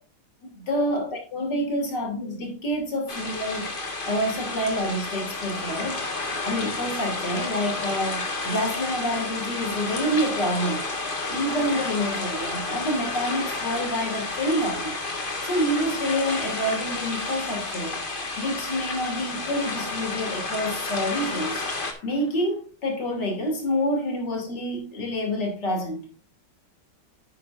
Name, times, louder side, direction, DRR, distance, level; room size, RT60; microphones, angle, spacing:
voice 1, 0.4-3.7 4.1-6.1 6.4-10.8 11.3-15.0 15.4-18.0 18.4-21.6 22.0-26.0, equal, 60° left, 3.5 m, -27 dB
sound 1, 3.1-21.9, left 3 dB, 30° left, 1.7 m, -31 dB
sound 2, 11.2-22.5, left 2 dB, 90° left, 4.4 m, -42 dB
10.5 x 9.2 x 2.6 m
omnidirectional pair, 2.2 m